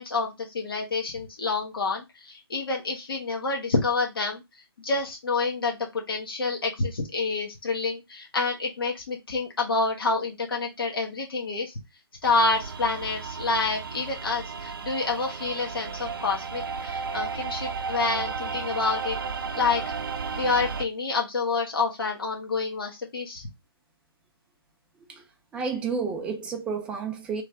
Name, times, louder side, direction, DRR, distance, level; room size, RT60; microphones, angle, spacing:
voice 1, 0.0-4.4 4.8-11.7 12.2-19.2 19.5-19.9 20.3-23.5, left 4 dB, 65° left, 1.3 m, -28 dB
sound 1, 12.2-20.9, right 5 dB, 60° right, 0.6 m, -34 dB
voice 2, 25.5-27.4, right 5 dB, 10° right, 0.5 m, -30 dB
3.3 x 3.2 x 3.7 m
figure-of-eight pair, 150°, 13 cm